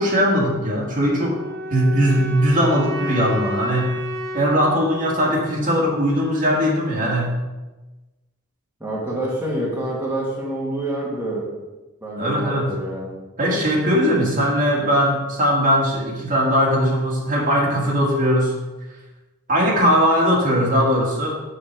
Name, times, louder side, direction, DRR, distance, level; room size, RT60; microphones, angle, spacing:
voice 1, 0.0-1.4 1.7-3.9 4.3-7.3 12.2-12.7 13.4-18.5 19.5-21.4, equal, 35° right, -3 dB, 2.0 m, -19 dB
sound 1, 1.1-6.1, equal, 70° right, 2.9 m, -32 dB
voice 2, 8.8-11.5 12.0-13.1, right 1 dB, 10° right, -6 dB, 1.6 m, -27 dB
7.9 x 6.9 x 4.6 m, 1.1 s
head